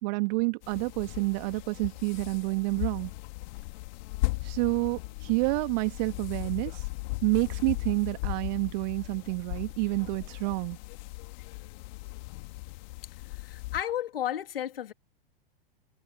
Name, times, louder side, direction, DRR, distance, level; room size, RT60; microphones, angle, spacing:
voice 1, 0.0-3.1 4.4-6.8 7.2-10.8, right 29 dB, 45° right, 1.9 m, -29 dB
sound 1, 0.6-13.8, left 24 dB, 50° left, 1.9 m, -37 dB
voice 2, 13.4-14.9, left 11 dB, 70° left, 2.3 m, -33 dB
figure-of-eight pair, 95°, 29 cm